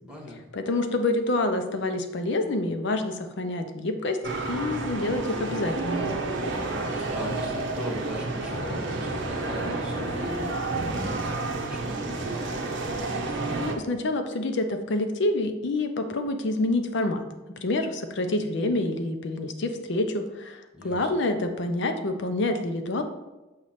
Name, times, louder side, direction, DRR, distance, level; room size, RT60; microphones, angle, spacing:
voice 1, 0.0-0.4 6.4-12.6 20.7-21.1, left 1 dB, 5° right, -4 dB, 1.3 m, -39 dB
voice 2, 0.5-4.2 4.5-6.1 13.6-17.3 17.6-23.0, left 2 dB, 60° left, 6 dB, 0.6 m, -27 dB
sound 1, 4.2-13.8, right 2 dB, 60° right, 0.9 m, -30 dB
6.4 x 3.1 x 5.7 m, 1.1 s
head